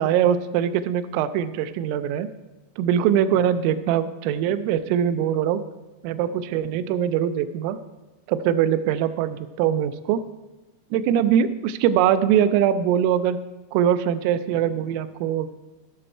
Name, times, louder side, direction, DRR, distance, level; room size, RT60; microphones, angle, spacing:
voice 1, 0.0-2.3 2.8-5.6 6.0-7.8 8.3-10.2 10.9-13.4 13.7-15.5, right 9 dB, 85° right, 12 dB, 3.1 m, -22 dB
16.0 x 6.3 x 4.3 m, 1.1 s
omnidirectional pair, 5.8 m